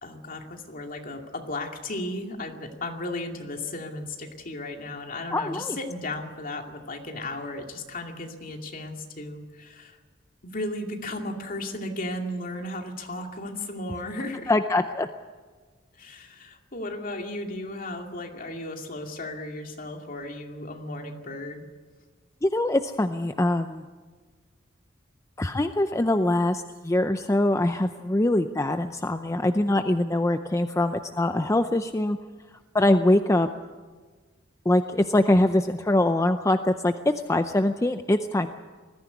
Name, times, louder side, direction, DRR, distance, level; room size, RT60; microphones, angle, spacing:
voice 1, 0.0-10.0 10.4-14.5 16.0-21.7, left 1 dB, 45° left, 3 dB, 2.4 m, -35 dB
voice 2, 5.3-5.8 14.5-15.1 22.4-23.8 25.4-32.2 32.7-33.5 34.7-36.9 37.3-38.5, left 1 dB, 15° left, 8 dB, 0.5 m, -23 dB
20.5 x 14.5 x 9.5 m, 1.4 s
head